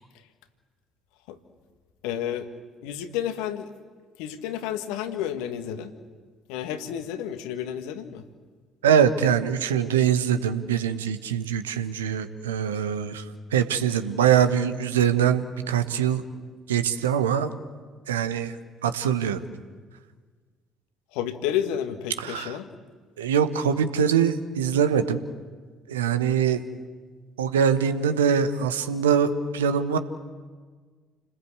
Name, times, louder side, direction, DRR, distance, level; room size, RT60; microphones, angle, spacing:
voice 1, 2.0-2.5 2.8-3.7 4.2-5.9 6.5-8.2 21.1-22.7, left 10 dB, 65° left, 9 dB, 1.6 m, -30 dB
voice 2, 8.8-13.2 13.5-16.2 16.7-17.5 18.1-18.6 18.8-19.4 22.2-22.6 23.2-25.2 25.9-26.6 27.4-30.0, right 8 dB, 75° right, 11 dB, 1.2 m, -23 dB
29.5 x 20.0 x 8.2 m, 1.5 s
figure-of-eight pair, 50°, 0 cm